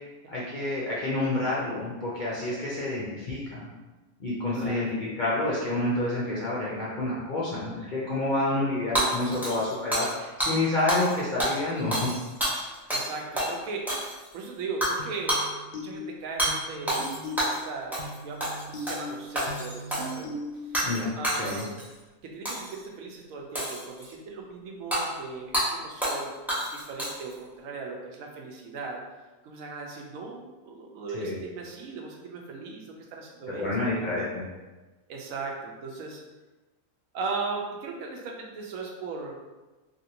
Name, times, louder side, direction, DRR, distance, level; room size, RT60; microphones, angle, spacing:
voice 1, 0.3-3.7 4.2-12.1 20.8-21.1 21.4-21.6 31.1-31.4 33.6-34.4, left 2 dB, 55° left, -7 dB, 0.5 m, -29 dB
voice 2, 4.5-4.8 9.5-9.6 12.9-14.0 14.3-17.0 17.4-20.4 20.7-20.9 21.2-21.8 22.2-26.3 26.7-29.0 29.4-34.1 35.1-36.2 37.1-39.3, right 4 dB, 75° right, 0 dB, 0.9 m, -38 dB
Hammer / Shatter, 8.9-10.1 10.4-10.5 10.9-11.1 11.4-13.1 13.4-13.5 13.9-14.3 14.8-15.0 15.3-15.5 16.4-16.5 16.9-17.6 17.9-18.1 18.4-19.0 19.3-20.1 20.7-21.0 21.2-21.8 22.4-22.8 23.5-24.1 24.9-25.0 25.5-25.7 26.0-26.2 26.5-27.3, right 1 dB, ahead, 0.5 m, -28 dB
sound 1, 15.0-21.0, left 1 dB, 85° left, 1.0 m, -39 dB
3.1 x 2.5 x 2.7 m, 1.2 s
omnidirectional pair, 1.5 m